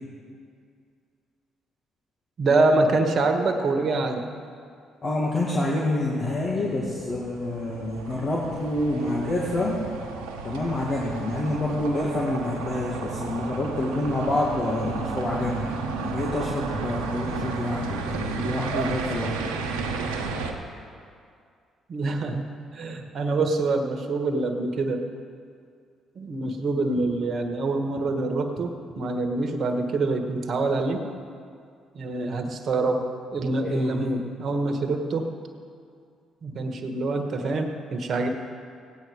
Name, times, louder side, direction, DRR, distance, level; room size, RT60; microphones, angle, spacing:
voice 1, 2.4-4.3 21.9-22.4 22.7-25.1 26.1-31.0 31.9-33.0 33.3-35.3 36.4-38.3, right 3 dB, 55° right, 5 dB, 1.5 m, -25 dB
voice 2, 5.0-9.8 10.4-15.6 16.0-19.4 33.6-34.1, left 2 dB, 45° left, -4 dB, 2.1 m, -27 dB
sound 1, 6.0-20.5, right 4 dB, 85° right, 1.2 m, -33 dB
16.5 x 9.3 x 4.9 m, 2.3 s
hypercardioid pair, 55°, 0 cm